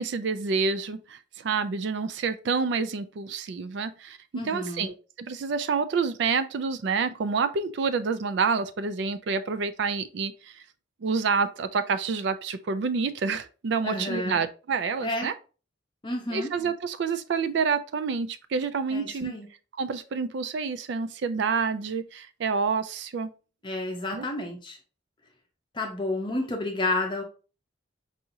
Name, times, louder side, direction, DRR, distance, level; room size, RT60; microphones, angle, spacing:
voice 1, 0.0-4.2 4.4-10.3 11.0-15.3 16.3-19.3 19.8-23.3 24.1-24.3, right 5 dB, 60° right, 0.3 m, -28 dB
voice 2, 4.3-4.9 13.8-14.4 15.0-15.3 16.0-16.5 18.9-19.5 23.6-24.8 25.7-27.2, left 2 dB, 25° left, 0.6 m, -30 dB
4.7 x 2.8 x 2.6 m
head